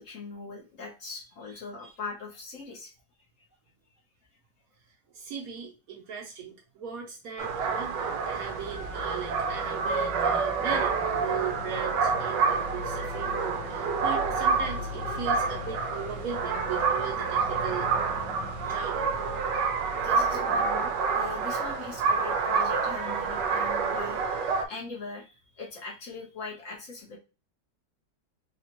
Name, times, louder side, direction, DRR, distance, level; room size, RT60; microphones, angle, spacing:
voice 1, 0.0-2.9 18.6-18.7 19.9-27.2, left 4 dB, 50° left, -3 dB, 1.2 m, -41 dB
voice 2, 5.1-17.9 18.6-19.1, right 7 dB, 60° right, -1 dB, 1.2 m, -38 dB
sound 1, 7.4-24.6, right 5 dB, 80° right, 1.2 m, -28 dB
sound 2, 7.6-23.4, left 6 dB, 85° left, 1.5 m, -46 dB
4.2 x 2.4 x 2.9 m, 0.31 s
omnidirectional pair, 1.9 m